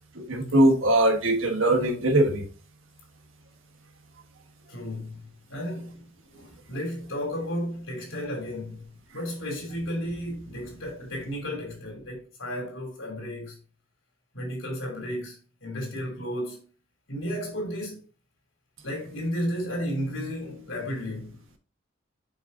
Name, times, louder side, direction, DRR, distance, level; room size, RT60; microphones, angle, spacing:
voice 1, 0.1-2.5, right 1 dB, 85° right, 1.3 m, -21 dB
voice 2, 4.7-5.2 5.5-6.0 6.3-8.8 9.1-13.6 14.3-16.6 17.1-18.0 18.8-21.6, equal, 80° left, 3.0 m, -33 dB
6.9 x 5.2 x 2.7 m
head